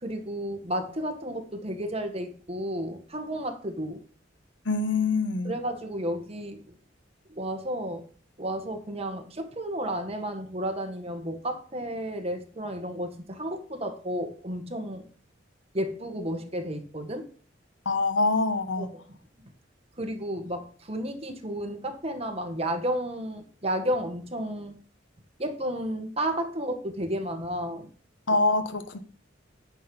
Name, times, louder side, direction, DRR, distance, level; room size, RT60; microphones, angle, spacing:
voice 1, 0.0-4.0 5.4-6.8 7.3-8.0 8.4-15.0 15.7-17.2 18.8-18.9 20.0-24.7 25.4-27.9, right 1 dB, 35° right, 1.6 m, -32 dB
voice 2, 4.7-5.5 17.8-18.9 28.3-29.0, left 3 dB, 80° left, 1.2 m, -25 dB
10.0 x 6.4 x 5.4 m
head